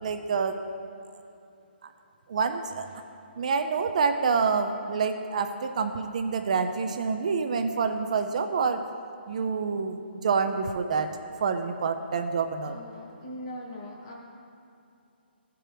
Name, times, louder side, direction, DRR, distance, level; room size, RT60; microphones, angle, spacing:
voice 1, 0.0-0.6 2.3-2.8 3.4-8.8 9.3-11.1 11.4-12.8, right 5 dB, 40° right, 7 dB, 0.3 m, -27 dB
voice 2, 12.6-14.1, left 1 dB, 30° left, -2 dB, 1.2 m, -41 dB
13.0 x 4.5 x 3.3 m, 2.6 s
hypercardioid pair, 165°, 6 cm